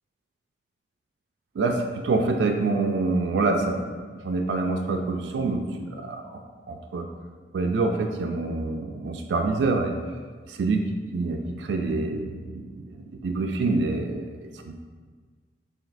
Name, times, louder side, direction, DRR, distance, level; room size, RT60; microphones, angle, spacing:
voice 1, 1.6-4.0 4.2-6.4 6.7-7.1 7.5-10.0 10.5-10.8 11.1-12.9 13.2-14.7, right 3 dB, 85° right, 4 dB, 0.3 m, -26 dB
4.9 x 3.1 x 2.6 m, 1.6 s
head